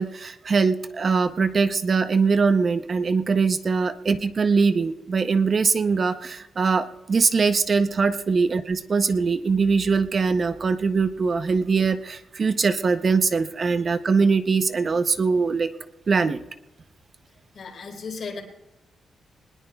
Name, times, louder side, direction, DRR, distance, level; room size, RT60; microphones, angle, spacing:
voice 1, 0.0-15.7 16.1-16.4, right 4 dB, 35° right, 10 dB, 0.6 m, -22 dB
voice 2, 17.5-18.4, left 5 dB, 55° left, 3 dB, 3.6 m, -35 dB
23.0 x 20.0 x 2.3 m, 1.0 s
wide cardioid pair, 140°, 0 cm